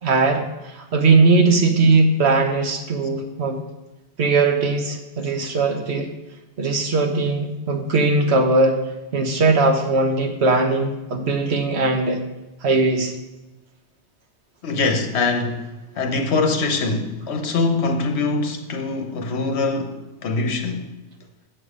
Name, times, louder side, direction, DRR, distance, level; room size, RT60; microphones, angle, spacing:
voice 1, 0.0-3.6 4.2-6.1 6.6-8.8 9.1-12.2 12.6-13.1, right 3 dB, 65° right, 1.3 m, -19 dB
voice 2, 14.6-20.9, left 3 dB, 70° left, 1.2 m, -23 dB
7.8 x 6.9 x 5.0 m
omnidirectional pair, 1.2 m